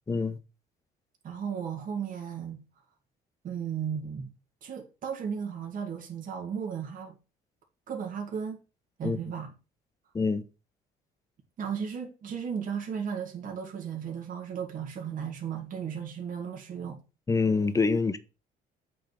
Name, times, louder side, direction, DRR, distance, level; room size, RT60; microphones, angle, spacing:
voice 1, 0.1-0.4 9.0-9.2 10.1-10.4 17.3-18.2, left 4 dB, 20° left, 0.8 m, -25 dB
voice 2, 1.2-2.6 3.4-4.3 4.6-7.2 7.9-8.6 9.0-9.5 11.6-17.0, right 7 dB, 55° right, 2.2 m, -35 dB
8.5 x 3.6 x 6.4 m
cardioid pair, 110°, 17 cm